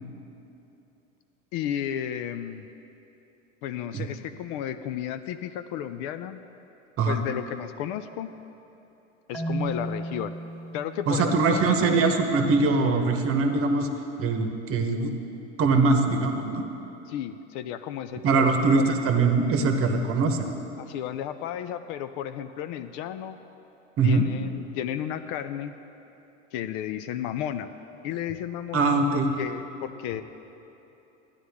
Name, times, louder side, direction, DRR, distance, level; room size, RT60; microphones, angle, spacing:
voice 1, 1.5-2.7 3.6-6.4 7.1-8.3 9.3-10.3 10.7-12.0 17.1-18.8 20.8-23.4 24.0-25.7 26.5-27.7 28.0-30.2, left 10 dB, 50° left, 11 dB, 0.5 m, -33 dB
Marimba xylophone, 9.3-12.3, right 1 dB, ahead, 1.3 m, -35 dB
voice 2, 11.1-13.9 14.2-15.1 15.6-16.6 18.2-20.6 24.0-24.2 28.7-29.3, right 3 dB, 35° right, 5 dB, 1.0 m, -22 dB
12.5 x 9.8 x 3.6 m, 3.0 s
hypercardioid pair, 95°, 37 cm